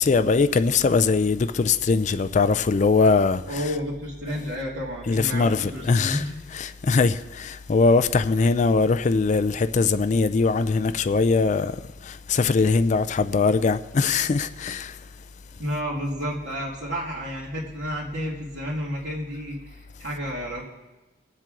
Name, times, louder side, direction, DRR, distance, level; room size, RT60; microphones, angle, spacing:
voice 1, 0.0-3.8 4.3-4.5 5.1-15.1, left 4 dB, 35° left, 0.3 m, -21 dB
voice 2, 3.5-5.4 5.7-6.6 15.6-20.6, equal, 60° right, 2.2 m, -31 dB
22.0 x 7.5 x 3.7 m
head